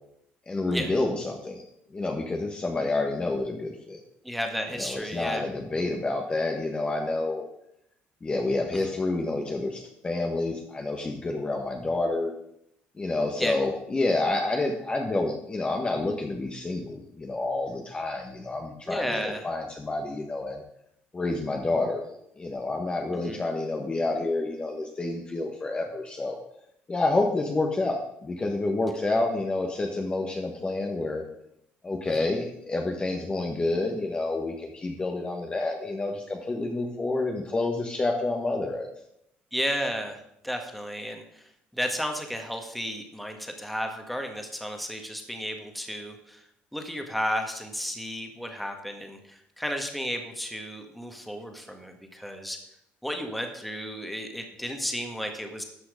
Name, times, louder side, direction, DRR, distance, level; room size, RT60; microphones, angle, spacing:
voice 1, 0.5-1.6 1.9-4.0 4.8-7.4 8.2-12.3 13.0-20.6 21.1-22.0 22.4-26.4 26.9-31.2 31.8-38.9, left 2 dB, 25° left, 2 dB, 1.3 m, -28 dB
voice 2, 4.2-5.4 8.8-8.9 13.4-13.6 18.9-19.4 23.3-23.4 32.1-32.3 39.5-40.2 40.4-46.4 46.7-52.6 53.0-55.6, equal, ahead, 4 dB, 1.7 m, -33 dB
12.5 x 6.2 x 5.1 m, 0.77 s
cardioid pair, 105°, 4 cm